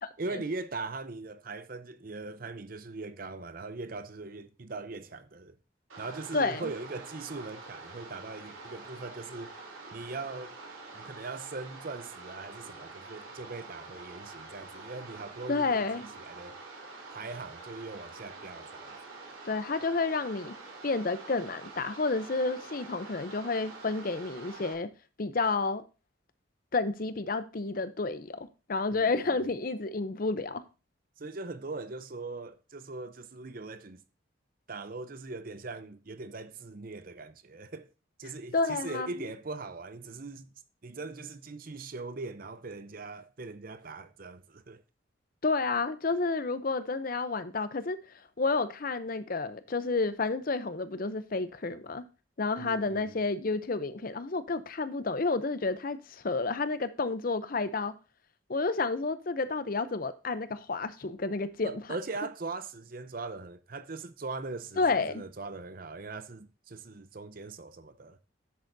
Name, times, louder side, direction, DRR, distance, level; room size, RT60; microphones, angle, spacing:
voice 1, 0.2-5.6 6.0-9.5 9.9-10.5 10.9-16.6 17.1-19.0 28.9-29.4 31.2-34.0 34.7-37.9 38.2-40.5 40.8-44.8 52.6-53.2 61.6-68.2, right 3 dB, 45° right, 0.7 m, -40 dB
sound 1, 5.9-24.7, right 3 dB, 85° right, 3.2 m, -46 dB
voice 2, 6.3-6.7 15.5-16.1 19.4-20.5 20.8-24.9 25.2-25.8 26.7-30.6 38.5-39.2 45.4-52.0 52.4-57.9 58.5-61.7 64.8-65.2, left 3 dB, 45° left, 0.6 m, -30 dB
10.0 x 8.0 x 2.7 m
head